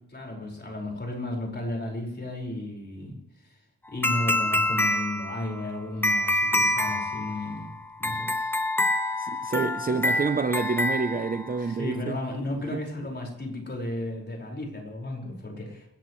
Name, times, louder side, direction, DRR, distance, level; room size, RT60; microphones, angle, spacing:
voice 1, 0.1-3.6 3.9-7.7 8.0-8.6 11.6-15.9, left 1 dB, 25° left, 5.0 m, -34 dB
sound 1, 4.0-11.7, left 1 dB, 5° left, 1.0 m, -27 dB
voice 2, 9.2-12.2 12.7-12.8, right 4 dB, 20° right, 0.6 m, -28 dB
28.5 x 14.0 x 3.2 m
wide cardioid pair, 145°, 39 cm